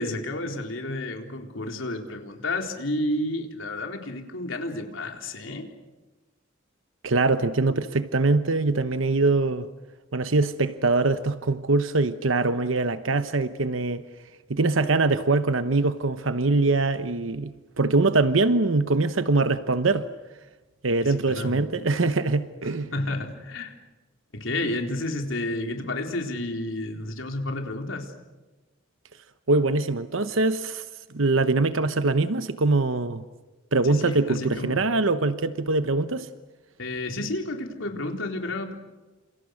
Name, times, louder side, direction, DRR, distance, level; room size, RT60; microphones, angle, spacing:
voice 1, 0.0-5.7 21.0-21.6 22.9-23.7 24.3-28.1 33.8-34.9 36.8-38.7, left 1 dB, 75° left, 3.9 m, -31 dB
voice 2, 7.0-9.7 10.1-14.0 14.5-17.5 17.8-20.1 20.8-22.9 29.5-30.8 31.1-33.2 33.7-36.3, right 3 dB, 80° right, 1.0 m, -23 dB
30.0 x 28.0 x 6.5 m
head